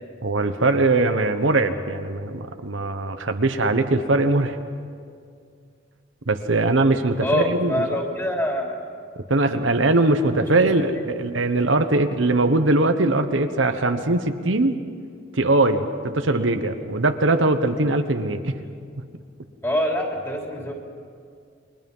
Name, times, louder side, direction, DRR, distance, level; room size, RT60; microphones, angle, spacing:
voice 1, 0.2-4.6 6.3-7.9 9.3-14.8 15.3-18.6, right 2 dB, 80° right, 7 dB, 1.2 m, -21 dB
voice 2, 7.2-8.8 10.8-11.1 16.3-16.5 19.6-20.7, left 1 dB, 15° left, 0 dB, 3.5 m, -25 dB
29.0 x 22.5 x 5.6 m, 2.2 s
head